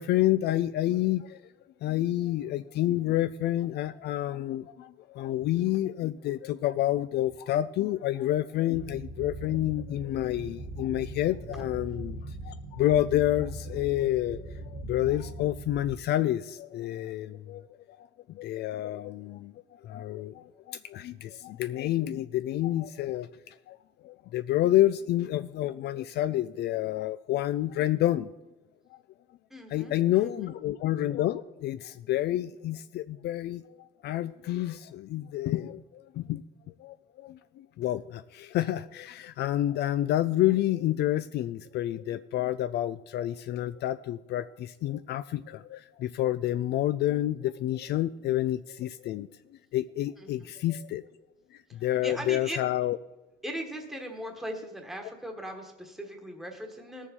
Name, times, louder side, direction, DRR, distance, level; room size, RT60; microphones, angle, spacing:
voice 1, 0.0-1.4 1.8-19.5 19.8-23.8 24.0-28.3 29.7-36.4 36.8-49.3 49.7-51.0 51.7-53.0, left 13 dB, 65° left, 12 dB, 0.4 m, -29 dB
sound 1, 8.7-15.9, right 2 dB, 75° right, 1.8 m, -41 dB
voice 2, 29.5-30.5 50.2-50.5 51.7-52.6 53.4-57.1, equal, ahead, 3 dB, 1.3 m, -39 dB
18.0 x 7.0 x 4.3 m, 1.1 s
cardioid pair, 145°, 19 cm